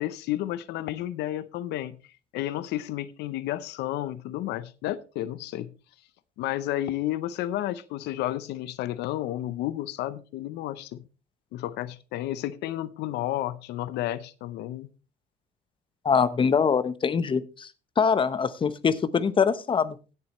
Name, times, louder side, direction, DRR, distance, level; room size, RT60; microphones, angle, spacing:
voice 1, 0.0-2.0 2.3-5.7 6.4-11.0 11.5-14.9, left 14 dB, 85° left, 15 dB, 0.6 m, -31 dB
voice 2, 16.0-17.7 18.0-20.0, left 6 dB, 30° left, 13 dB, 0.9 m, -23 dB
16.5 x 7.6 x 3.0 m, 0.33 s
cardioid pair, 110°, 17 cm